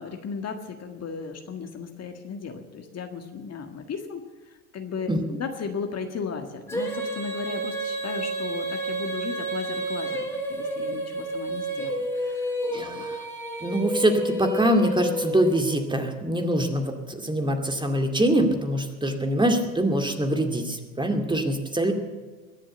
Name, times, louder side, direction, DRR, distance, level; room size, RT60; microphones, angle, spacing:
voice 1, 0.0-13.1, left 5 dB, 35° left, 5 dB, 1.7 m, -36 dB
Female singing, 6.7-15.8, right 1 dB, 5° left, 2.9 m, -30 dB
voice 2, 12.7-13.2 13.6-21.9, right 1 dB, 10° right, 4 dB, 2.2 m, -24 dB
22.0 x 7.5 x 8.1 m, 1.4 s
hypercardioid pair, 75°, 45 cm